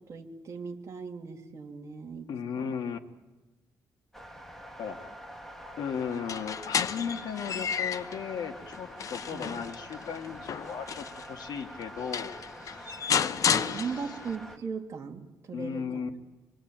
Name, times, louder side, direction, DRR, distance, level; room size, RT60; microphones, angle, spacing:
voice 1, 0.0-2.7 9.3-9.6 13.4-16.0, right 5 dB, 40° right, 1 dB, 2.9 m, -38 dB
voice 2, 2.3-3.0 4.8-5.2 5.8-13.3 13.7-13.9 15.5-16.1, left 7 dB, 70° left, 4 dB, 2.1 m, -36 dB
sound 1, 4.1-14.6, equal, 5° left, 2.2 m, -45 dB
sound 2, 6.1-8.2 8.7-11.3 11.8-11.9 12.1-14.3, left 7 dB, 50° left, 0.9 m, -32 dB
26.5 x 20.5 x 8.9 m, 1.2 s
cardioid pair, 130°, 7 cm